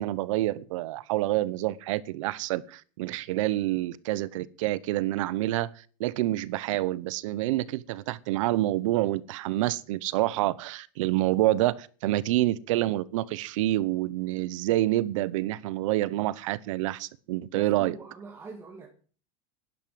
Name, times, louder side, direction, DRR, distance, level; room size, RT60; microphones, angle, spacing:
voice 1, 0.0-5.7 6.0-18.0, right 16 dB, 75° right, 0.9 m, -27 dB
voice 2, 17.5-18.9, right 4 dB, 15° right, 2.3 m, -43 dB
11.0 x 11.0 x 7.8 m
supercardioid pair, 160°, 17 cm